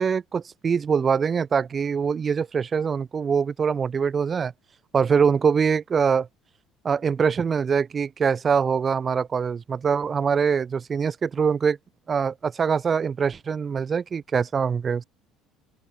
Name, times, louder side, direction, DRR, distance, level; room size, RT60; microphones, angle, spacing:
voice 1, 0.0-4.5 4.9-6.3 6.8-11.8 12.1-15.0, right 6 dB, 20° right, 5.3 m, -23 dB
open air
cardioid pair, 180°, 0 cm